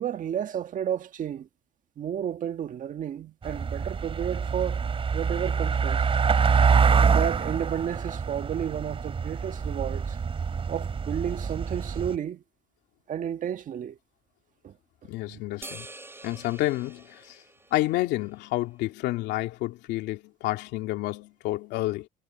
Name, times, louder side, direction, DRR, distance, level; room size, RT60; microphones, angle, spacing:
voice 1, 0.0-1.5 2.0-4.8 5.1-6.1 7.0-10.2 10.7-12.4 13.1-14.0 14.6-14.8 15.3-15.4, right 9 dB, 50° right, 1.5 m, -32 dB
sound 1, 3.4-12.2, right 6 dB, 35° right, 2.7 m, -25 dB
voice 2, 15.1-15.9 16.2-17.4 17.7-22.1, left 17 dB, 90° left, 2.7 m, -29 dB
sound 2, 15.6-18.3, right 2 dB, 15° right, 5.0 m, -46 dB
cardioid pair, 110°, 17 cm